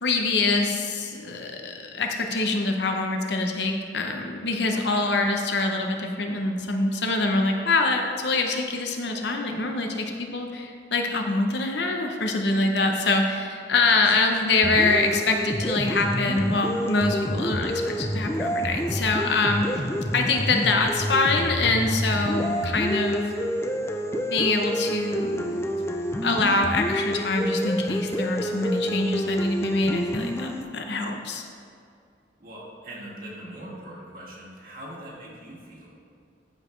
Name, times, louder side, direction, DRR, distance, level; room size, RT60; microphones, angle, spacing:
voice 1, 0.0-19.8 20.1-23.3 24.3-25.7 26.2-31.5, left 3 dB, 65° left, 3 dB, 0.8 m, -25 dB
voice 2, 4.7-5.1 13.8-14.1 32.4-36.0, right 1 dB, 50° right, -4 dB, 1.8 m, -41 dB
sound 1, 14.6-30.6, equal, 15° left, 0.3 m, -28 dB
13.0 x 5.1 x 3.2 m, 2.4 s
head